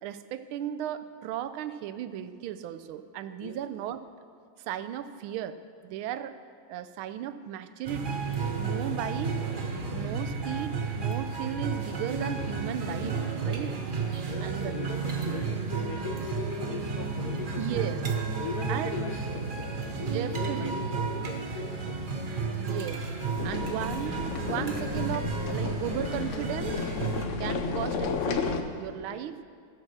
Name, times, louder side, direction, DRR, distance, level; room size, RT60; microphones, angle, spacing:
voice 1, 0.0-4.0 4.7-6.3 6.7-8.2 8.6-9.5 9.9-13.8 14.4-14.8 17.6-18.0 18.7-18.9 20.0-20.7 22.6-23.1 23.4-26.9 27.4-29.4, right 11 dB, 85° right, 11 dB, 1.4 m, -36 dB
sound 1, 7.9-27.2, right 4 dB, 50° right, 0.6 m, -33 dB
sound 2, 11.3-27.6, right 5 dB, 70° right, 1.1 m, -42 dB
voice 2, 14.2-17.9 18.4-22.2 23.4-23.8 29.1-29.3, left 5 dB, 65° left, 5 dB, 1.0 m, -39 dB
sound 3, 23.4-28.6, left 5 dB, 85° left, 0.6 m, -32 dB
15.0 x 6.0 x 6.6 m, 2.2 s
omnidirectional pair, 2.2 m